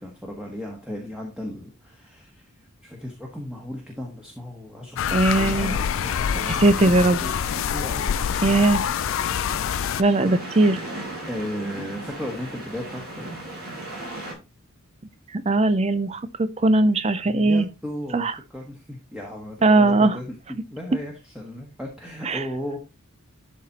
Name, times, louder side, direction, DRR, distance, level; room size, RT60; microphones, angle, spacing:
voice 1, 0.0-2.4 2.8-8.5 9.8-10.3 11.3-13.3 17.2-22.8, left 1 dB, 5° right, 1.4 m, -36 dB
sound 1, 5.0-10.0, left 8 dB, 65° left, 0.3 m, -26 dB
voice 2, 5.1-5.7 6.6-7.2 8.4-8.8 10.0-10.7 15.3-17.7 18.1-18.3 19.6-20.2 22.3-22.4, right 2 dB, 30° right, 0.5 m, -19 dB
sound 2, 6.0-14.3, right 1 dB, 45° right, 5.0 m, -37 dB
12.0 x 4.2 x 4.1 m
head